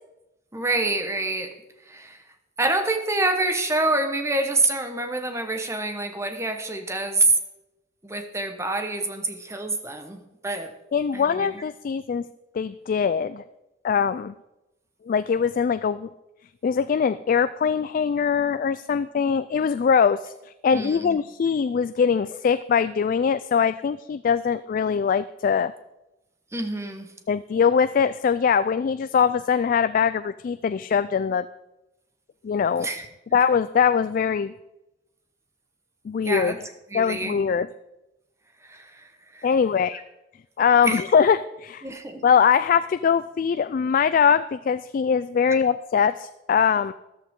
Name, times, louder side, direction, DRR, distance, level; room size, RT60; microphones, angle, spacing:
voice 1, 0.5-1.5 1.9-2.2 2.6-7.4 8.0-10.7 11.1-11.6 20.7-21.2 26.5-27.1 32.8-33.1 36.2-36.6 36.9-37.4 38.6-39.5 39.9-40.0 40.8-41.0 41.8-42.2, right 2 dB, 15° right, 6 dB, 1.2 m, -26 dB
voice 2, 10.9-12.3 12.5-13.4 13.8-14.3 15.1-16.1 16.6-25.7 27.3-31.5 32.4-32.9 33.3-34.5 36.1-36.5 36.9-37.7 39.4-40.0 40.6-41.8 42.2-46.9, left 6 dB, 50° left, 14 dB, 0.3 m, -22 dB
13.5 x 12.5 x 3.7 m, 0.97 s
head